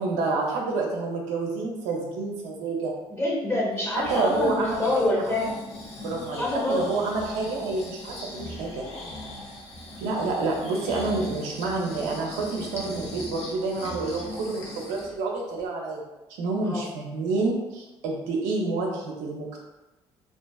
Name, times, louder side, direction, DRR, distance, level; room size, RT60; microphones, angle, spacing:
voice 1, 0.0-2.9 4.1-5.4 6.0-8.9 10.0-16.0 16.4-19.6, right 3 dB, 90° right, -1 dB, 0.5 m, -28 dB
voice 2, 3.1-5.6 6.3-6.8 16.6-16.9, left 1 dB, 20° left, -3 dB, 1.0 m, -26 dB
Breathing, 3.7-15.1 15.6-15.7, left 1 dB, 60° left, 0.8 m, -39 dB
2.4 x 2.4 x 2.3 m, 1.0 s
supercardioid pair, 70°, 12 cm